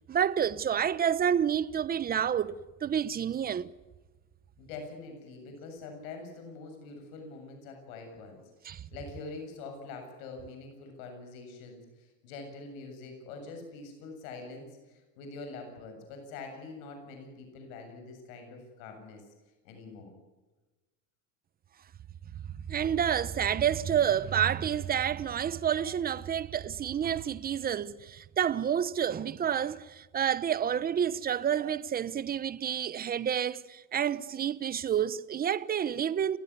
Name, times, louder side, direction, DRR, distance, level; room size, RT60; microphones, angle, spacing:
voice 1, 0.1-3.7 8.6-8.9 22.7-36.4, right 9 dB, 20° right, 0.9 m, -29 dB
voice 2, 4.6-19.3 19.6-20.1, left 3 dB, 85° left, 7.5 m, -45 dB
29.5 x 16.0 x 9.6 m
cardioid pair, 145°, 40 cm